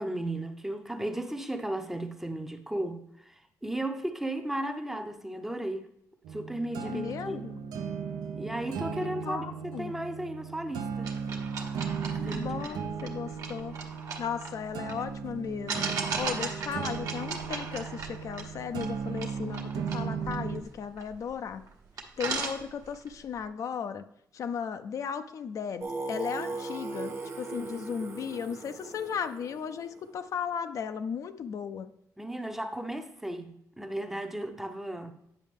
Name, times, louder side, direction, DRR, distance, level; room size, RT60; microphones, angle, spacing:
voice 1, 0.0-5.9 6.3-7.5 8.3-11.1 12.2-12.8 32.2-35.1, right 1 dB, 5° right, 0.6 m, -35 dB
sound 1, 6.2-20.6, right 6 dB, 90° right, 0.6 m, -36 dB
voice 2, 6.8-7.6 9.0-9.9 12.2-13.8 14.2-21.6 22.2-24.0 24.3-31.9, left 7 dB, 55° left, 0.4 m, -36 dB
sound 2, 11.0-15.0 15.7-21.3 21.7-21.8 22.0-23.1, right 4 dB, 60° right, 1.1 m, -37 dB
Singing, 25.8-30.5, right 3 dB, 35° right, 0.8 m, -38 dB
9.1 x 5.5 x 3.6 m
cardioid pair, 125°, 7 cm